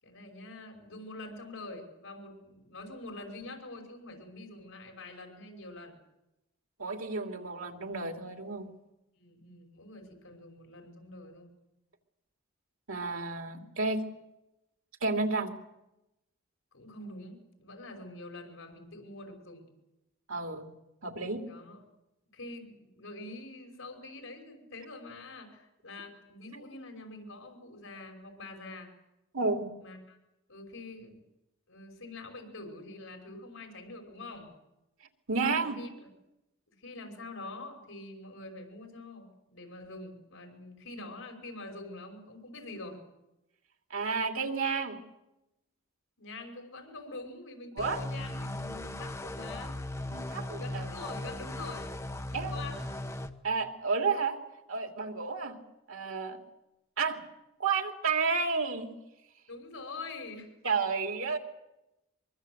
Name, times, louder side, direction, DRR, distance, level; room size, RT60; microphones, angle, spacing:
voice 1, 0.0-6.0 9.2-11.6 16.7-19.7 21.4-21.8 22.3-28.9 29.8-30.2 30.5-31.2 31.7-34.5 35.6-36.1 36.8-43.0 46.2-49.8 50.6-51.9 52.3-52.9 59.5-60.5, left 2 dB, 80° left, 4 dB, 5.6 m, -45 dB
voice 2, 6.8-8.7 12.9-14.0 15.0-15.5 20.3-20.7 21.0-21.4 29.3-29.7 35.3-35.8 43.9-45.0 47.8-48.0 50.1-50.9 52.3-52.5 53.4-54.4 54.7-55.6 55.9-56.4 57.0-57.2 57.6-58.9 60.6-61.4, right 4 dB, 80° right, 4 dB, 2.9 m, -31 dB
sound 1, 47.8-53.3, left 1 dB, 15° left, 1.0 m, -38 dB
24.0 x 23.5 x 8.0 m, 0.94 s
head